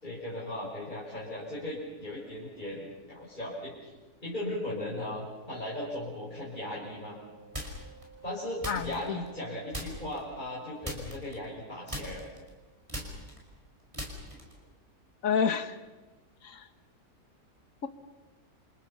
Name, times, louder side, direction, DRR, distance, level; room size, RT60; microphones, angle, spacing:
voice 1, 0.0-3.9 4.2-7.2 8.2-12.2, left 1 dB, 30° left, -7 dB, 6.3 m, -37 dB
Wind instrument woodwind instrument, 4.4-12.6, right 5 dB, 70° right, 8.1 m, -56 dB
sound 1, 7.5-8.0 8.6-9.4 9.7-10.2 10.8-11.6 11.9-14.7, equal, 20° right, 5.1 m, -39 dB
voice 2, 8.7-9.2 15.2-15.8 16.4-16.7, left 6 dB, 55° left, 10 dB, 1.8 m, -29 dB
28.5 x 28.5 x 5.7 m, 1.2 s
omnidirectional pair, 1.7 m